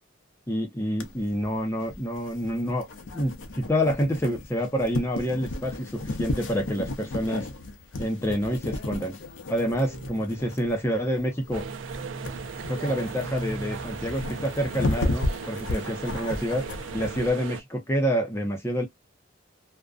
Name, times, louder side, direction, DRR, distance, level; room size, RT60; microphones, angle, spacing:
voice 1, 0.5-2.9 3.1-7.5 8.0-9.2 9.5-11.6 12.7-16.6 16.9-18.9, equal, 15° left, 0.6 m, -27 dB
sound 1, 1.0-17.3, left 2 dB, 65° left, 0.6 m, -34 dB
sound 2, 9.6-14.9, right 2 dB, 20° right, 0.7 m, -41 dB
sound 3, 11.5-17.6, right 6 dB, 70° right, 0.4 m, -38 dB
2.5 x 2.2 x 2.3 m
head